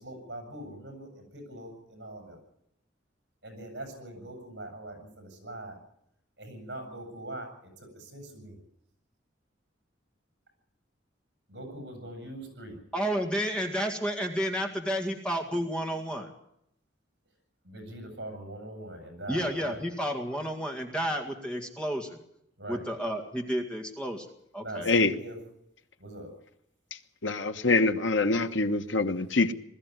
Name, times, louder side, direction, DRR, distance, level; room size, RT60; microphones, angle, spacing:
voice 1, 0.0-2.4 3.4-5.8 6.4-8.6 11.5-12.8 17.6-19.8 22.6-22.8 24.6-25.4 26.0-26.3, right 1 dB, 65° right, 5 dB, 7.3 m, -42 dB
voice 2, 12.9-16.3 19.3-22.2 22.7-24.3 24.5-24.9, equal, 5° left, 2 dB, 2.1 m, -31 dB
voice 3, 27.2-29.5, left 3 dB, 85° left, 8 dB, 1.3 m, -25 dB
21.0 x 14.0 x 9.5 m, 0.76 s
head